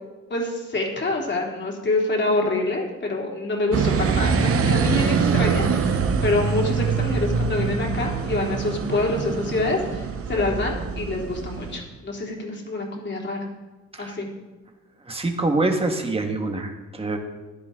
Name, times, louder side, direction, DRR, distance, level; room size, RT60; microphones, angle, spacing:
voice 1, 0.3-13.5 14.0-14.3, left 2 dB, 35° left, -1 dB, 3.4 m, -26 dB
sound 1, 3.7-11.8, right 5 dB, 50° right, 1.0 m, -24 dB
voice 2, 15.1-17.2, right 2 dB, 20° right, 3 dB, 1.9 m, -25 dB
15.0 x 11.0 x 3.9 m, 1.2 s
cardioid pair, 90°, 30 cm